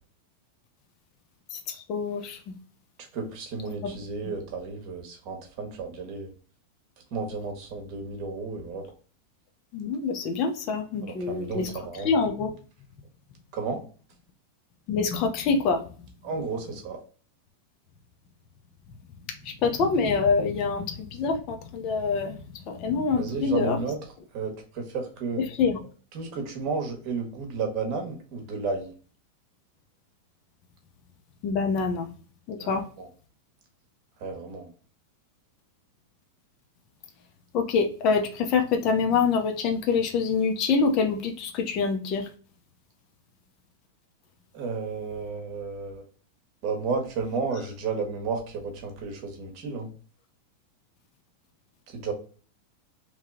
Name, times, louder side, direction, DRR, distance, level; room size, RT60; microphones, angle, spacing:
voice 1, 1.9-2.4 9.7-11.7 12.0-12.5 14.9-15.8 19.4-22.4 22.7-23.8 25.6-25.8 31.4-32.1 32.5-32.8 37.5-42.3, left 5 dB, 40° left, 3 dB, 0.7 m, -25 dB
voice 2, 3.1-6.3 7.1-8.8 11.0-12.1 13.5-13.8 16.2-17.0 23.2-24.0 24.3-25.4 26.1-28.9 32.6-33.1 34.2-34.7 44.5-46.1 46.6-49.9 51.9-52.1, right 4 dB, 45° right, 3 dB, 1.3 m, -32 dB
3.1 x 2.8 x 3.7 m, 0.40 s
supercardioid pair, 140°, 0 cm